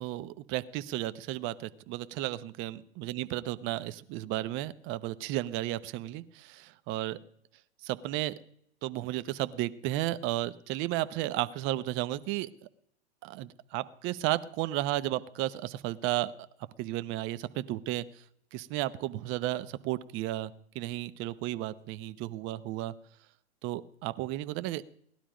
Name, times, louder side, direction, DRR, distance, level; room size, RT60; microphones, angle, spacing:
voice 1, 0.0-7.2 7.8-8.3 8.8-12.5 13.2-16.3 16.8-18.1 18.5-22.9 23.6-24.8, right 15 dB, 35° right, 14 dB, 0.9 m, -33 dB
18.5 x 12.0 x 5.1 m, 0.68 s
hypercardioid pair, 130°, 34 cm